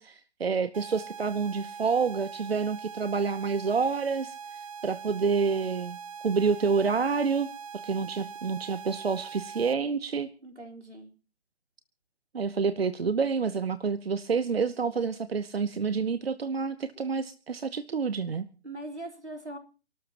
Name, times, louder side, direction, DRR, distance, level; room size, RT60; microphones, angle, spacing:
voice 1, 0.0-4.4 4.8-6.0 6.2-7.5 7.8-10.3 12.3-18.5, right 5 dB, 60° right, 14 dB, 0.9 m, -28 dB
sound 1, 0.7-9.7, right 6 dB, 30° right, 0.8 m, -42 dB
voice 2, 10.4-11.1 16.9-17.1 18.6-19.6, right 1 dB, 85° right, 2 dB, 4.2 m, -41 dB
29.0 x 13.0 x 3.0 m, 0.36 s
figure-of-eight pair, 140°, 34 cm